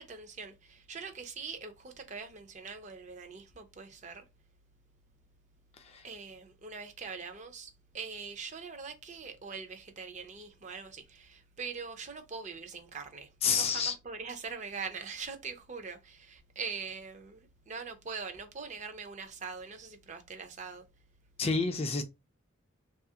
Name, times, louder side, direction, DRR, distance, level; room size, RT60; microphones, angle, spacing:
voice 1, 0.0-4.2 6.0-20.9, right 5 dB, 35° right, 0.5 m, -43 dB
voice 2, 13.4-13.9 21.4-22.0, left 5 dB, 30° left, 0.3 m, -28 dB
2.7 x 2.4 x 2.7 m
head